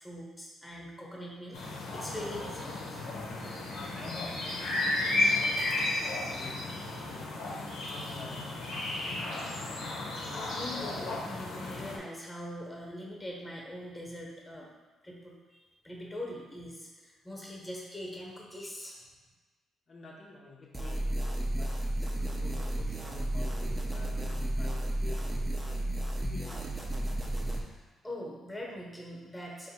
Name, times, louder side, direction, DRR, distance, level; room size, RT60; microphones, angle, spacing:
voice 1, 0.0-3.0 10.3-14.7 15.0-19.0 27.4-29.7, left 1 dB, 10° left, -2 dB, 1.0 m, -43 dB
sound 1, 1.5-12.0, left 2 dB, 75° left, 0.8 m, -33 dB
voice 2, 3.7-7.4 7.8-8.7 19.9-25.8 26.2-26.6, left 3 dB, 45° left, -4 dB, 0.6 m, -50 dB
sound 2, 20.7-27.6, right 1 dB, 15° right, 0.5 m, -32 dB
3.7 x 2.6 x 4.2 m, 1.3 s
cardioid pair, 90°, 0 cm